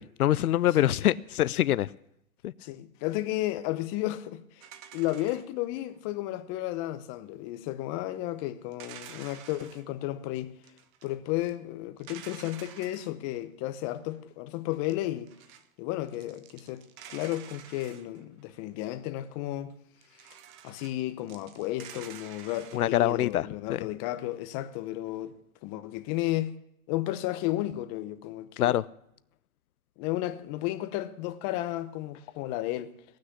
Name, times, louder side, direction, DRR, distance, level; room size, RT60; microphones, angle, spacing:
voice 1, 0.0-1.9 2.4-2.5 22.7-23.9 28.6-28.9, left 13 dB, 80° left, 0.6 m, -25 dB
voice 2, 2.6-4.7 4.9-10.5 11.0-15.3 15.8-19.7 20.2-20.3 20.6-25.4 25.6-26.5 26.9-28.8 30.0-32.9, left 15 dB, 25° left, 0.9 m, -33 dB
sound 1, 4.6-5.9 8.7-9.9 10.6-11.1 11.4-11.5 12.0-13.1 14.7-15.7 16.1-18.5 20.0-21.0 21.3-23.0, right 10 dB, 20° right, 0.5 m, -49 dB
17.5 x 6.4 x 9.9 m
hypercardioid pair, 140°, 43 cm